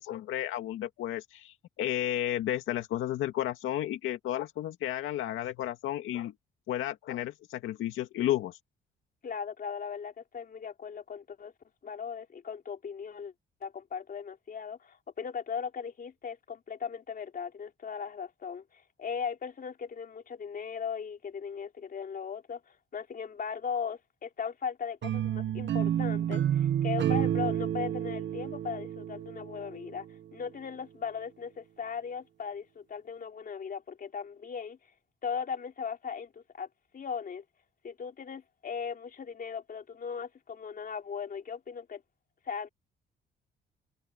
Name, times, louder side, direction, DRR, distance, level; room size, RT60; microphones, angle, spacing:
voice 1, 0.0-6.3 6.7-8.6, left 12 dB, 85° left, 2.1 m, -32 dB
voice 2, 9.2-11.5 11.8-13.3 13.6-30.1 30.3-34.9 35.2-36.7 36.9-37.4 37.8-42.0 42.4-42.7, left 6 dB, 45° left, 3.3 m, -38 dB
sound 1, 25.0-30.1, right 10 dB, 65° right, 1.4 m, -30 dB
cardioid pair, 90°, 20 cm